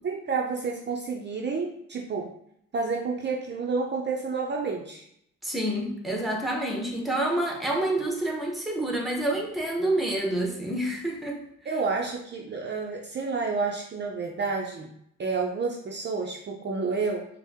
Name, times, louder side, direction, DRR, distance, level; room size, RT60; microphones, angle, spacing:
voice 1, 0.0-2.3 2.7-5.0 11.7-14.9 15.2-17.3, right 4 dB, 35° right, 0 dB, 0.5 m, -30 dB
voice 2, 5.4-11.4, right 1 dB, ahead, 0 dB, 0.8 m, -28 dB
4.4 x 2.0 x 3.4 m, 0.72 s
cardioid pair, 90°, 30 cm